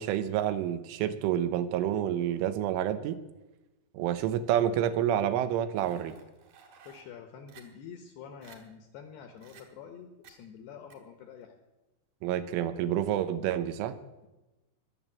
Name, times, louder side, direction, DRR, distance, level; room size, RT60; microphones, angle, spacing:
voice 1, 0.0-3.2 3.9-6.2 12.2-14.0, right 10 dB, 80° right, 11 dB, 3.3 m, -28 dB
sound 1, 5.7-7.0 7.5-7.6 8.1-8.2 8.4-8.6 9.4-9.6 10.2-10.4 10.9-11.0, right 7 dB, 55° right, 2.6 m, -54 dB
voice 2, 6.9-11.6, left 7 dB, 75° left, 6 dB, 2.6 m, -47 dB
21.5 x 7.3 x 7.3 m, 1.0 s
omnidirectional pair, 5.7 m